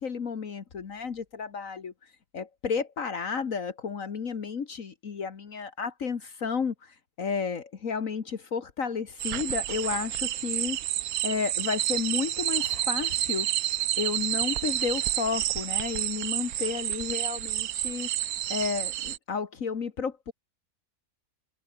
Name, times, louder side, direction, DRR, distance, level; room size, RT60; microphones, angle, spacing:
voice 1, 0.0-1.9 2.3-10.8 11.2-13.5 14.0-18.1 18.5-20.3, left 5 dB, 60° left, 1.8 m, -32 dB
sound 1, 9.2-19.2, right 13 dB, 75° right, 1.2 m, -30 dB
open air
omnidirectional pair, 1.6 m